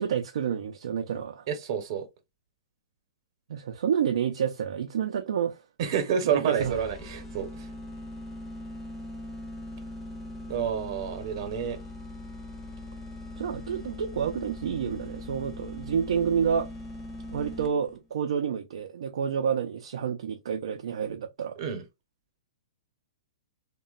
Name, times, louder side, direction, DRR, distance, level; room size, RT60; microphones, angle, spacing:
voice 1, 0.0-1.4 3.5-5.6 6.2-6.7 13.4-16.7 17.3-21.6, right 7 dB, 75° right, 0.4 m, -29 dB
voice 2, 1.5-2.1 5.8-7.6 10.5-11.8 21.6-21.8, right 8 dB, 50° right, 0.8 m, -29 dB
sound 1, 6.6-18.0, left 1 dB, 10° left, 0.6 m, -41 dB
2.9 x 2.1 x 2.3 m
hypercardioid pair, 145°, 3 cm